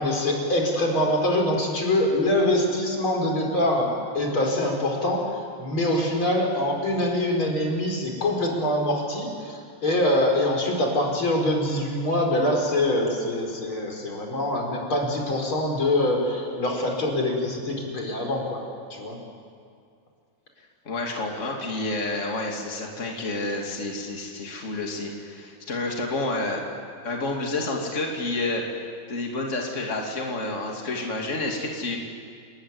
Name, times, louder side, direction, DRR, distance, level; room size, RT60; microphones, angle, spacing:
voice 1, 0.0-18.6 18.9-19.2, left 1 dB, 80° left, 0 dB, 5.5 m, -24 dB
voice 2, 20.8-26.6 27.0-28.6 29.1-32.0, left 2 dB, 35° left, 0 dB, 2.9 m, -29 dB
29.5 x 20.0 x 9.6 m, 2.2 s
omnidirectional pair, 2.2 m